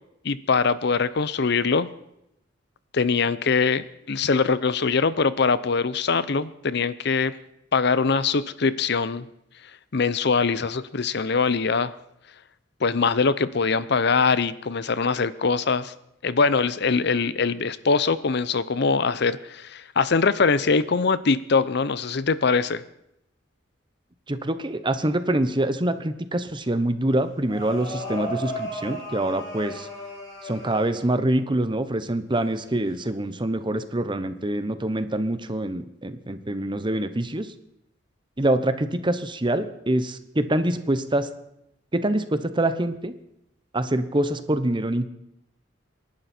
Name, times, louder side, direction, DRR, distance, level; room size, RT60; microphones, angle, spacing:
voice 1, 0.2-1.9 2.9-7.3 7.7-9.3 9.9-11.9 12.8-15.9 16.2-22.8, left 4 dB, 60° left, 16 dB, 0.7 m, -22 dB
voice 2, 24.3-29.9 30.4-37.5 38.4-41.3 41.9-43.1 43.7-45.1, right 1 dB, 25° right, 11 dB, 1.0 m, -25 dB
sound 1, 27.5-31.3 32.5-33.0, left 1 dB, 20° left, 5.9 m, -35 dB
27.5 x 11.5 x 4.4 m, 0.80 s
head